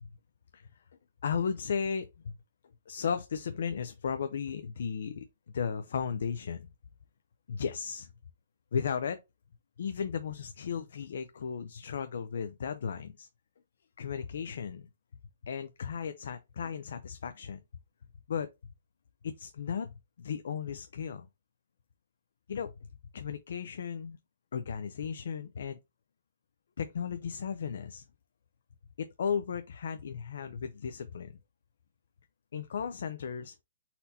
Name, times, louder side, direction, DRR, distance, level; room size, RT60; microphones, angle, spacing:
voice 1, 1.2-2.4 2.9-5.2 5.5-6.7 7.5-8.1 8.7-9.2 9.8-13.3 14.0-14.9 15.4-17.6 18.3-18.5 19.2-21.3 22.5-22.9 23.1-24.2 24.5-25.8 26.8-28.0 29.0-31.3 32.5-33.5, left 6 dB, 75° left, 0.4 m, -35 dB
4.2 x 2.7 x 4.0 m
hypercardioid pair, 155°, 0 cm